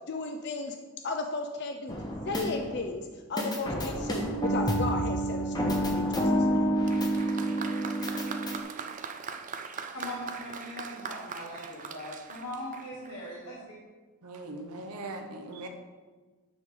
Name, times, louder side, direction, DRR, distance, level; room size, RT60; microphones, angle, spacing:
voice 1, 0.1-0.8 1.0-1.9 2.3-6.7, left 3 dB, 50° left, 4 dB, 0.5 m, -35 dB
sound 1, 1.9-2.9 3.4-8.6, equal, 15° left, 0.8 m, -29 dB
Bass guitar, 3.9-7.4, right 10 dB, 15° right, 1.4 m, -42 dB
Applause, 6.8-13.3, right 6 dB, 35° right, 0.4 m, -41 dB
voice 2, 9.9-13.8, left 1 dB, 75° left, -5 dB, 1.5 m, -40 dB
voice 3, 14.2-15.7, right 2 dB, 90° right, 3 dB, 1.0 m, -40 dB
9.5 x 3.8 x 4.8 m, 1.4 s
head